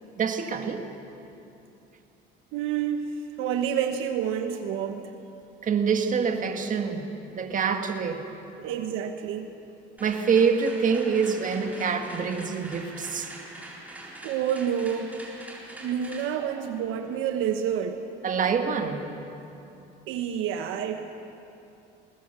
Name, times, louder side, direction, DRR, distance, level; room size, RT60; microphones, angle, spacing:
voice 1, 0.2-0.9 5.6-8.2 8.6-8.8 10.0-13.3 18.2-19.1, right 6 dB, 40° right, 5 dB, 1.9 m, -26 dB
voice 2, 2.5-5.1 8.6-9.5 14.2-15.2 15.8-18.0 20.1-21.0, right 8 dB, 75° right, 6 dB, 1.2 m, -29 dB
sound 1, 10.0-17.9, right 1 dB, 5° right, 4.2 m, -44 dB
21.5 x 19.0 x 6.9 m, 2.9 s
supercardioid pair, 100°, 21 cm